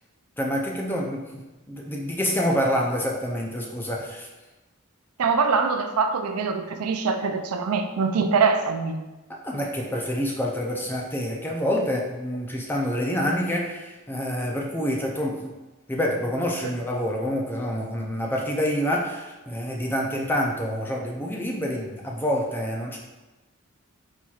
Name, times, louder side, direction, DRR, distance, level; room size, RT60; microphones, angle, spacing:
voice 1, 0.4-4.3 9.4-15.5 15.9-23.0, equal, 10° left, -1 dB, 0.4 m, -27 dB
voice 2, 5.2-9.0 16.6-16.7, right 5 dB, 90° right, 6 dB, 0.4 m, -23 dB
4.4 x 4.3 x 2.4 m, 1.1 s
head